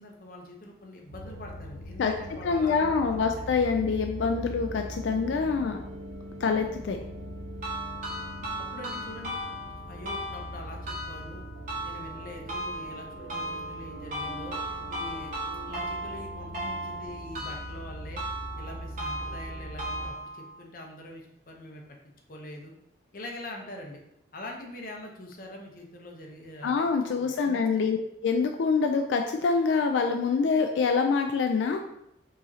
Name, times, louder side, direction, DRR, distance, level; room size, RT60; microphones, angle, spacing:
voice 1, 0.0-3.5 8.6-9.4 9.8-11.4 11.8-15.3 15.7-18.2 18.6-22.0 22.3-22.7 23.1-24.0 24.3-26.8 27.2-27.9, left 1 dB, 50° left, 0 dB, 0.7 m, -43 dB
sound 1, 1.1-20.1, equal, 70° right, 0.7 m, -41 dB
voice 2, 2.4-5.8 6.4-7.0 26.6-28.0 28.2-31.9, left 5 dB, 85° left, 5 dB, 0.3 m, -25 dB
sound 2, 7.6-20.6, right 1 dB, 45° right, 1.2 m, -37 dB
4.7 x 3.0 x 2.7 m, 0.82 s
head